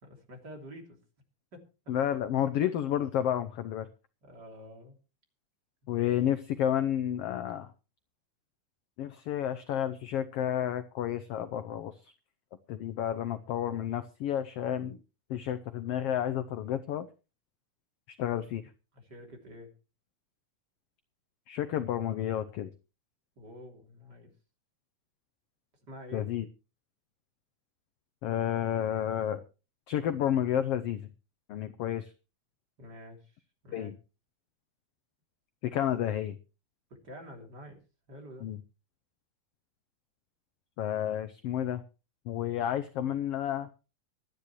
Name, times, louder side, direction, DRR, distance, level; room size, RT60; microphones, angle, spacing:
voice 1, 0.0-1.0 1.5-1.9 4.2-5.0 18.9-19.7 23.4-24.3 25.8-26.3 32.8-33.4 33.6-33.9 36.9-37.8 38.1-38.5, equal, 35° right, 2 dB, 3.6 m, -48 dB
voice 2, 1.9-3.9 5.9-7.7 9.0-11.9 12.7-15.0 15.3-17.1 18.2-18.6 21.5-22.7 26.1-26.5 28.2-29.4 29.9-31.0 31.5-32.1 33.7-34.0 35.6-36.4 38.4-38.6 40.8-41.8 42.3-43.7, left 10 dB, 75° left, 11 dB, 1.4 m, -31 dB
25.0 x 9.7 x 3.1 m, 0.32 s
omnidirectional pair, 3.5 m